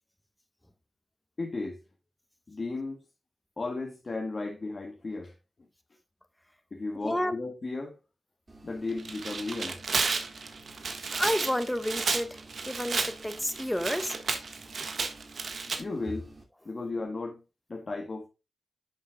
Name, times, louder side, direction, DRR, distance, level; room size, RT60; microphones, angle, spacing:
voice 1, 1.4-1.8 2.5-3.0 3.6-5.3 6.7-8.0 8.6-9.8 15.8-16.3 16.6-17.4 17.7-18.3, left 3 dB, 55° left, 1.6 m, -35 dB
voice 2, 7.0-7.3 11.1-14.1, left 1 dB, 10° left, 1.4 m, -30 dB
sound 1, 8.5-16.4, right 1 dB, 40° right, 2.5 m, -50 dB
Tearing, 8.9-15.8, right 4 dB, 75° right, 1.5 m, -32 dB
10.0 x 7.3 x 2.3 m
cardioid pair, 45°, 0 cm